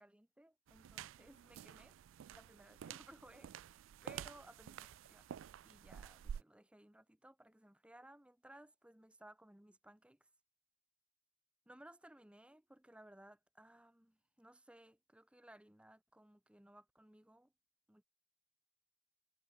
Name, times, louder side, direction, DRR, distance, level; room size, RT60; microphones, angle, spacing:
voice 1, 0.0-2.0 2.3-5.3 5.6-10.3 11.7-17.5 17.9-18.0, right 1 dB, 5° right, 0.8 m, -61 dB
sound 1, 0.7-6.4, right 9 dB, 85° right, 0.3 m, -50 dB
head